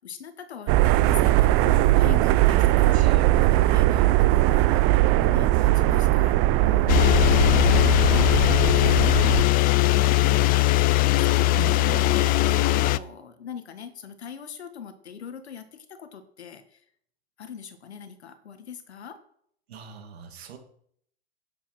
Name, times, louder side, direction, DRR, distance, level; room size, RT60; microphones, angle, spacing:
voice 1, 0.0-7.2 7.5-9.4 9.7-16.8 17.4-19.2, left 7 dB, 85° left, 10 dB, 1.7 m, -41 dB
sound 1, 0.7-9.4, right 16 dB, 45° right, 0.7 m, -20 dB
voice 2, 2.9-3.4 9.1-9.5 11.5-12.0 19.7-20.6, right 7 dB, 75° right, 5 dB, 2.6 m, -40 dB
sound 2, 6.9-13.0, left 16 dB, 30° left, 0.4 m, -20 dB
11.0 x 7.2 x 6.0 m, 0.67 s
hypercardioid pair, 105°, 32 cm